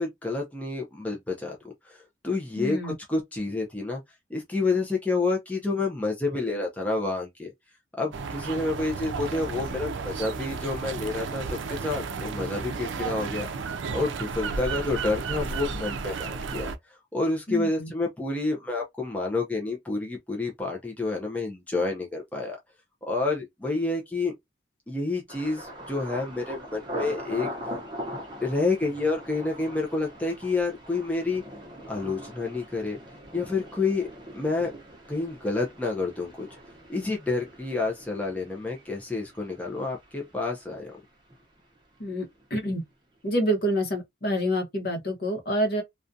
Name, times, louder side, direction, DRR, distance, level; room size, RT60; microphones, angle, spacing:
voice 1, 0.0-4.0 4.3-7.5 8.0-22.6 23.1-24.3 24.9-27.5 28.4-31.4 31.9-33.0 33.3-34.1 34.3-34.7 35.1-36.5 36.9-40.9, left 3 dB, 10° left, 0.4 m, -29 dB
voice 2, 2.6-2.9 17.5-17.9 42.0-42.8 43.2-45.8, equal, 55° left, 0.8 m, -27 dB
sound 1, 8.1-16.8, right 4 dB, 90° right, 0.4 m, -33 dB
Thunder, 25.3-41.1 41.3-41.9 42.4-42.6, equal, 25° right, 0.7 m, -41 dB
2.4 x 2.2 x 2.5 m
head